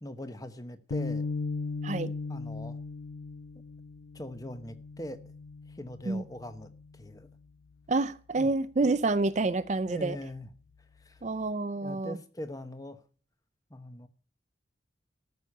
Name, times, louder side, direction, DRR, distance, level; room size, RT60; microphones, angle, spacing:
voice 1, 0.0-1.3 2.3-2.8 4.1-5.2 5.7-7.3 8.4-8.5 9.9-10.5 11.0-11.2 11.8-13.0 13.7-14.1, left 1 dB, 20° left, 1.0 m, -41 dB
sound 1, 0.9-7.3, left 4 dB, 60° left, 0.5 m, -38 dB
voice 2, 7.9-10.2 11.2-12.2, right 3 dB, 35° right, 0.5 m, -28 dB
13.5 x 6.4 x 8.4 m
head